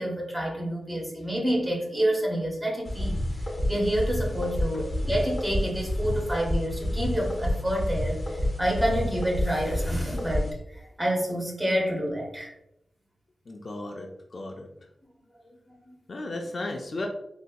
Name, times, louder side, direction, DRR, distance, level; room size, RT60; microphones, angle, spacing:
voice 1, 0.0-3.2 3.7-12.5 15.9-16.0, equal, 15° right, -1 dB, 0.7 m, -28 dB
sound 1, 2.9-10.5, left 1 dB, 25° left, 0.7 m, -29 dB
voice 2, 13.5-14.7 16.1-17.1, left 2 dB, 40° left, 2 dB, 0.3 m, -35 dB
3.9 x 2.6 x 2.2 m, 0.82 s
wide cardioid pair, 170°, 0 cm